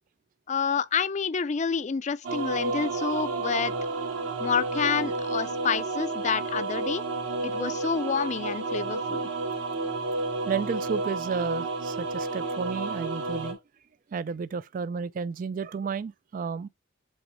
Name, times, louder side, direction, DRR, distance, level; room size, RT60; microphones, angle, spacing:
voice 1, 0.5-3.7 4.4-7.0 7.4-9.2, left 6 dB, 35° left, 0.4 m, -28 dB
sound 1, 2.2-13.5, right 3 dB, 80° right, 2.3 m, -31 dB
voice 2, 10.5-13.6 14.1-16.7, right 5 dB, 45° right, 0.3 m, -32 dB
7.9 x 3.0 x 4.9 m
head